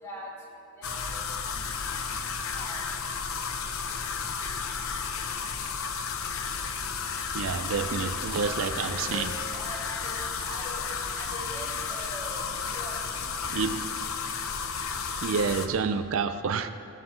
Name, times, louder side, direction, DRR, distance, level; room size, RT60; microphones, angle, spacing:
sound 1, 0.8-15.7, left 5 dB, 80° left, 0.8 m, -33 dB
voice 1, 0.8-1.2 1.5-1.6 2.5-2.8 4.4-4.7 8.3-9.3 9.5-10.9 11.1-12.4 12.7-13.7 16.2-16.7, equal, 15° left, -7 dB, 2.7 m, -43 dB
voice 2, 7.3-9.3 13.5-13.7 15.2-16.7, right 5 dB, 75° right, 11 dB, 0.4 m, -28 dB
15.5 x 5.8 x 5.7 m, 2.5 s
head